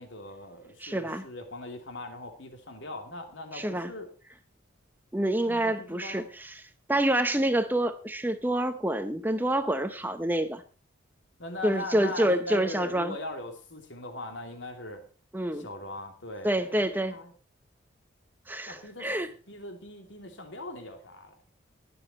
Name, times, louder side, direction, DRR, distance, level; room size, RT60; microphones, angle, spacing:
voice 1, 0.0-4.1 5.4-6.3 11.4-15.0 15.5-17.3 18.7-19.1 19.5-21.3, left 1 dB, 70° left, 5 dB, 2.8 m, -40 dB
voice 2, 0.8-1.2 3.5-3.9 5.1-6.6 6.9-10.6 11.6-13.1 15.3-15.6 16.4-17.2 18.5-19.3, right 1 dB, 10° right, 10 dB, 0.7 m, -27 dB
20.0 x 7.1 x 4.4 m, 0.37 s
head